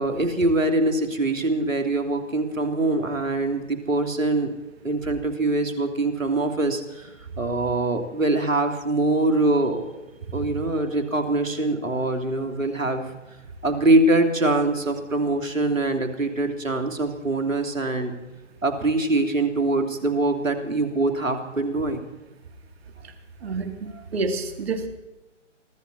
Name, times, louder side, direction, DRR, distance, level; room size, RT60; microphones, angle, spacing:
voice 1, 0.0-4.5 4.8-7.1 7.4-9.9 10.3-13.1 13.6-18.1 18.6-22.0, right 2 dB, 85° right, 6 dB, 3.2 m, -23 dB
voice 2, 23.4-24.9, right 3 dB, 50° right, 6 dB, 2.6 m, -28 dB
24.0 x 13.0 x 4.2 m, 1.1 s
figure-of-eight pair, 150°, 38 cm